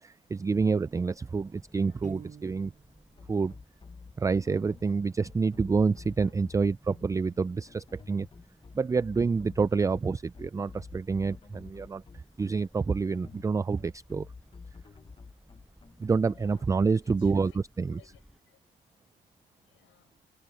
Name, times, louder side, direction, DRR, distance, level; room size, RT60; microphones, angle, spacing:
voice 1, 0.0-2.7 3.3-3.5 4.2-8.3 8.7-12.0 12.4-14.3 16.0-17.5 17.8-18.0, right 4 dB, 15° right, 0.3 m, -28 dB
sound 1, 0.9-18.4, equal, ahead, 6.7 m, -60 dB
voice 2, 1.7-2.0 7.8-7.9 16.3-16.7 17.0-18.6 19.6-20.2, left 13 dB, 80° left, 6.0 m, -59 dB
Piano, 2.0-3.0, right 7 dB, 40° right, 1.1 m, -46 dB
sound 2, 3.2-16.9, left 4 dB, 25° left, 0.9 m, -49 dB
cardioid pair, 90°, 20 cm